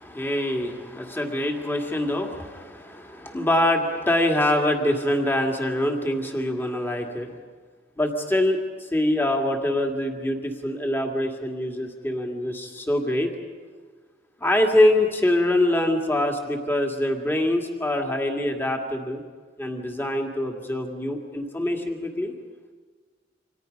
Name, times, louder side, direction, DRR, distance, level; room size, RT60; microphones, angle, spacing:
voice 1, 0.0-7.3 8.0-8.6 8.9-13.3 14.4-19.2 19.6-22.3, left 1 dB, 10° left, 2 dB, 2.1 m, -24 dB
28.5 x 25.5 x 5.3 m, 1.5 s
head